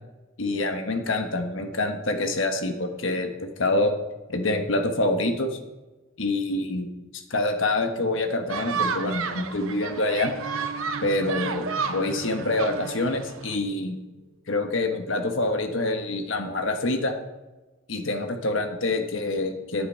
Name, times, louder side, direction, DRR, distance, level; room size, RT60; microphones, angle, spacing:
voice 1, 0.4-3.9 4.3-5.6 6.2-6.9 7.1-10.3 11.0-14.0 14.5-17.1 17.9-19.9, left 2 dB, 65° left, 5 dB, 1.3 m, -26 dB
sound 1, 8.5-13.6, right 5 dB, 80° right, 0.9 m, -32 dB
sound 2, 10.1-14.0, right 4 dB, 50° right, 0.6 m, -39 dB
10.5 x 8.0 x 5.7 m, 1.1 s
head